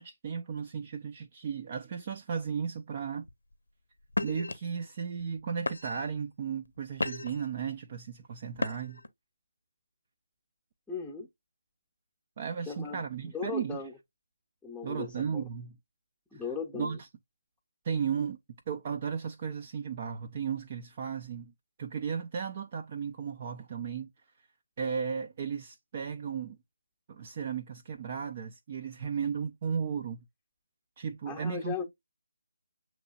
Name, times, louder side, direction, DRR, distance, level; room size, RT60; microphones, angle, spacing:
voice 1, 0.0-3.3 4.2-9.0 12.4-13.8 14.8-15.8 16.3-16.4 16.7-17.1 17.8-18.4 18.7-21.5 21.8-24.1 24.8-26.6 27.1-30.2 31.0-31.8, right 6 dB, 35° right, 0.5 m, -35 dB
sound 1, 3.2-3.5 4.1-4.5 5.2-5.3 5.7-6.1 6.7-7.5 8.5-9.1, left 2 dB, 80° left, 0.6 m, -34 dB
voice 2, 10.9-11.3 12.7-13.9 14.6-15.4 16.3-17.0 31.3-31.8, left 5 dB, 5° left, 0.8 m, -37 dB
6.6 x 3.0 x 2.5 m
figure-of-eight pair, 155°, 0 cm